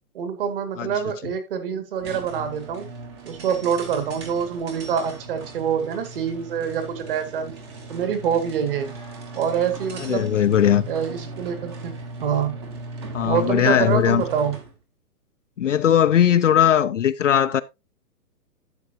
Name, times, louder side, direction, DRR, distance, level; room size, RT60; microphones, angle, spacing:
voice 1, 0.1-2.9 3.3-7.5 7.9-8.9 9.3-10.3 10.9-12.0 12.2-12.5 13.2-14.6, right 7 dB, 35° right, 2.2 m, -25 dB
sound 1, 2.0-14.8, right 2 dB, 15° right, 1.1 m, -38 dB
voice 2, 10.0-10.9 13.1-14.2 15.6-17.6, left 10 dB, 50° left, 0.6 m, -19 dB
12.0 x 8.5 x 2.8 m
hypercardioid pair, 175°, 47 cm